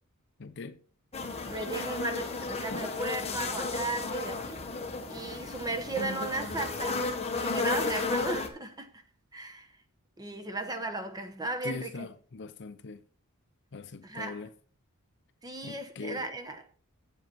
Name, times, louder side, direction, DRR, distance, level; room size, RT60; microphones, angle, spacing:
voice 1, 0.4-0.8 11.6-13.0 13.7-14.5 15.6-16.3, left 3 dB, 55° left, 0.6 m, -41 dB
sound 1, 1.1-8.5, left 3 dB, 30° left, 1.2 m, -33 dB
voice 2, 1.4-4.6 5.1-7.1 7.3-9.0 9.3-9.7 10.2-12.1 14.0-14.4 15.4-16.8, right 2 dB, 20° right, 1.1 m, -36 dB
7.8 x 7.5 x 4.7 m
head